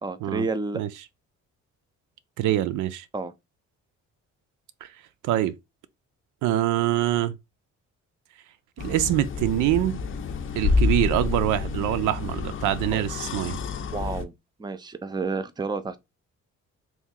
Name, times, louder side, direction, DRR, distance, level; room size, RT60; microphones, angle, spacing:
voice 1, 0.0-0.8 3.1-3.3 12.9-13.0 13.9-14.3 14.6-16.0, right 3 dB, 15° right, 0.5 m, -30 dB
voice 2, 2.4-3.0 4.8-4.9 5.2-5.6 6.4-7.4 8.8-10.0 10.6-13.6, right 13 dB, 90° right, 0.5 m, -24 dB
sound 1, 8.8-14.2, left 4 dB, 40° left, 0.5 m, -28 dB
3.0 x 2.6 x 3.6 m
cardioid pair, 90°, 30 cm